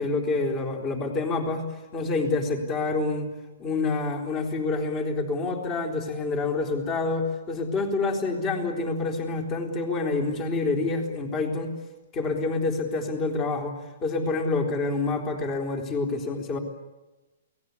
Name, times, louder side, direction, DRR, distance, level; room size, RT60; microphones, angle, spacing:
voice 1, 0.0-1.7 1.9-3.3 3.6-11.7 12.1-13.7 14.0-16.6, left 3 dB, 25° left, 3 dB, 3.8 m, -27 dB
29.0 x 19.0 x 8.4 m, 1.1 s
hypercardioid pair, 145°, 0 cm